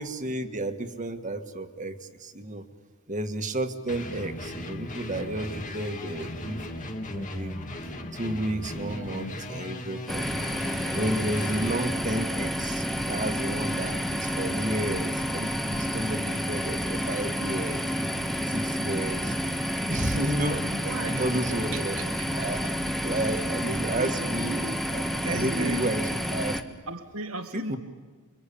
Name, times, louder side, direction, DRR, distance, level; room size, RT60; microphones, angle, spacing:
voice 1, 0.0-2.6 3.1-6.6 7.1-7.6 8.1-10.3 10.9-17.8 18.5-19.4 19.9-20.7 21.2-21.9 22.4-22.7 23.0-24.6 24.9-26.0 26.3-26.5 27.5-27.8, right 1 dB, 35° right, 7 dB, 1.7 m, -31 dB
sound 1, 3.9-11.8, left 1 dB, 35° left, 2.2 m, -37 dB
sound 2, 10.1-26.6, equal, ahead, 1.3 m, -30 dB
voice 2, 20.7-22.0 22.6-24.9 25.2-25.9 26.9-27.8, right 3 dB, 70° right, 7 dB, 1.6 m, -37 dB
28.5 x 24.0 x 8.6 m, 1.4 s
head